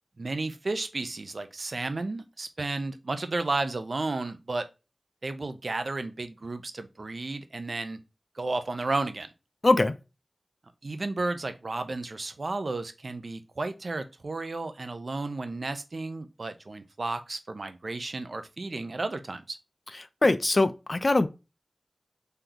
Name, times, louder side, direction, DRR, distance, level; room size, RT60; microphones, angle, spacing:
voice 1, 0.2-4.6 5.2-8.0 8.3-9.3 10.8-19.6, right 2 dB, 70° right, 0.6 m, -33 dB
voice 2, 9.6-9.9 20.2-21.3, left 2 dB, 50° left, 0.5 m, -22 dB
3.9 x 3.3 x 2.7 m
wide cardioid pair, 50°, 0 cm